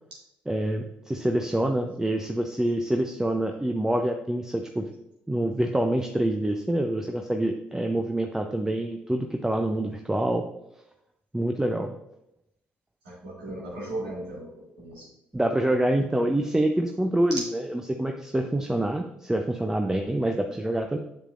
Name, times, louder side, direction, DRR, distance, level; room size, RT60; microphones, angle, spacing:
voice 1, 0.5-4.9 5.3-10.5 11.3-11.9 15.3-17.4 17.9-21.0, right 1 dB, 10° right, 3 dB, 0.6 m, -26 dB
voice 2, 13.0-15.1 19.8-20.0, right 1 dB, 85° right, -6 dB, 2.6 m, -37 dB
7.5 x 6.7 x 2.5 m, 0.84 s
hypercardioid pair, 50°, 5 cm